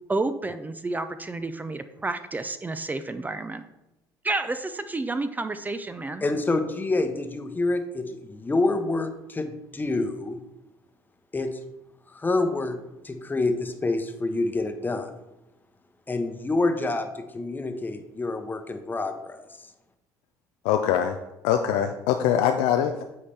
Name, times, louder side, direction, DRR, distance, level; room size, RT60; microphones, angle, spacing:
voice 1, 0.1-3.6 4.2-6.2, right 2 dB, 20° right, 10 dB, 0.4 m, -30 dB
voice 2, 6.2-10.4 11.3-11.5 12.1-12.8 13.0-15.1 16.1-17.1 17.3-19.4, left 2 dB, 20° left, 8 dB, 0.9 m, -27 dB
voice 3, 20.6-21.2 21.4-23.0, left 9 dB, 80° left, 6 dB, 0.4 m, -23 dB
8.5 x 4.1 x 3.4 m, 0.94 s
supercardioid pair, 70°, 9 cm